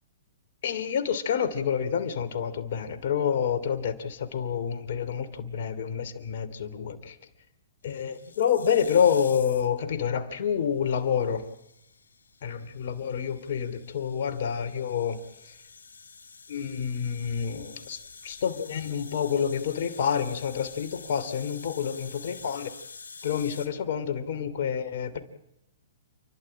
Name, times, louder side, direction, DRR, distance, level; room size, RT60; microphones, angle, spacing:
voice 1, 0.6-7.2 7.8-11.5 12.4-15.6 16.5-22.7 23.2-25.2, left 7 dB, 60° left, 2.9 m, -28 dB
sound 1, 7.8-9.8 10.9-23.7, left 4 dB, 85° left, 3.2 m, -48 dB
29.5 x 12.0 x 8.9 m
hypercardioid pair, 130°, 0 cm